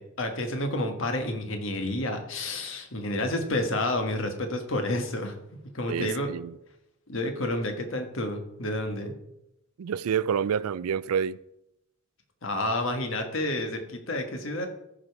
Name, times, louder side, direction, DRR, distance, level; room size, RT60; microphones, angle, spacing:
voice 1, 0.0-5.4 5.7-6.3 7.1-9.1 12.4-14.7, left 1 dB, 65° left, 1.5 m, -30 dB
voice 2, 5.9-6.5 9.8-11.4, right 7 dB, 90° right, 0.4 m, -28 dB
14.0 x 5.2 x 4.7 m
head